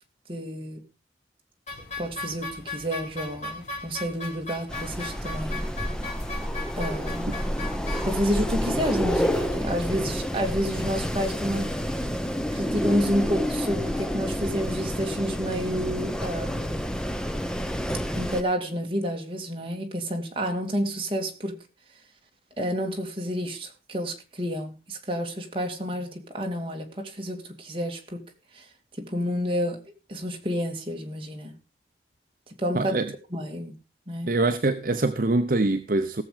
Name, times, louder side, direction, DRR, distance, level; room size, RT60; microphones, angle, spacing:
voice 1, 0.3-0.8 2.0-5.6 6.7-7.3 8.0-11.7 12.5-16.9 18.1-21.6 22.6-28.3 28.5-28.7 29.0-29.8 30.1-31.5 32.6-33.0 33.3-33.8 34.1-34.3, equal, 30° right, 2.3 m, -29 dB
sound 1, 1.7-9.6, left 3 dB, 40° left, 3.5 m, -38 dB
Wind, 4.7-18.4, equal, 5° left, 0.8 m, -29 dB
voice 2, 32.7-33.1 34.3-36.2, right 2 dB, 50° right, 0.7 m, -24 dB
17.5 x 7.4 x 4.9 m
head